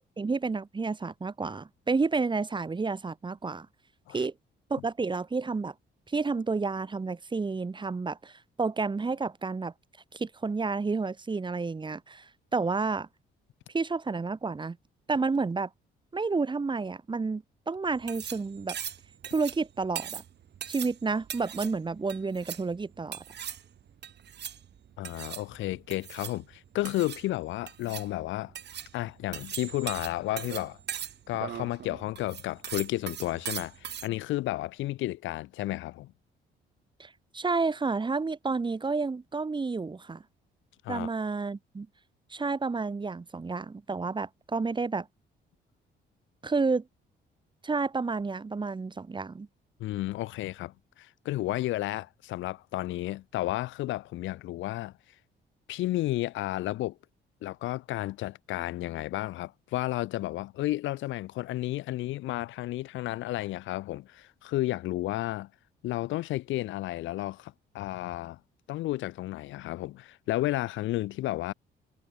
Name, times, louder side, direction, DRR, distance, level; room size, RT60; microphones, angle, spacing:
voice 1, 0.2-3.7 4.1-4.3 4.7-5.7 6.1-9.7 10.1-13.1 13.7-14.8 15.1-15.7 16.1-18.8 19.3-20.2 20.7-23.2 37.0-40.2 40.9-41.9 42.3-45.1 46.4-46.8 47.6-49.5, right 4 dB, 25° right, 1.1 m, -30 dB
sound 1, 17.9-34.1, right 9 dB, 60° right, 2.5 m, -40 dB
voice 2, 25.0-28.5 28.9-30.8 31.3-36.1 40.8-41.1 49.8-54.9 55.7-57.0 57.4-65.5 65.8-68.4 68.7-71.5, left 16 dB, 75° left, 0.5 m, -32 dB
cardioid pair, 90°, 20 cm